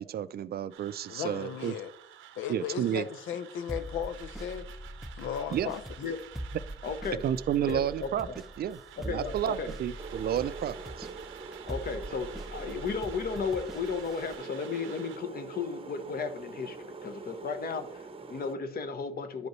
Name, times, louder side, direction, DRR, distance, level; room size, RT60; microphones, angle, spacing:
voice 1, 0.0-1.7 2.5-3.1 5.5-5.7 7.2-8.3 8.6-8.8 9.0-11.1, right 10 dB, 50° right, 0.4 m, -31 dB
sound 1, 0.7-15.2, right 11 dB, 90° right, 0.7 m, -51 dB
voice 2, 1.1-1.9 2.4-4.7 5.1-5.8, left 8 dB, 85° left, 0.5 m, -36 dB
sound 2, 3.7-14.4, equal, ahead, 0.5 m, -43 dB
voice 3, 6.8-7.2 7.7-8.1 9.1-9.7 11.7-19.5, left 5 dB, 50° left, 1.0 m, -34 dB
sound 3, 10.0-18.6, right 4 dB, 30° right, 0.7 m, -44 dB
10.5 x 5.2 x 3.1 m
cardioid pair, 90°, 20 cm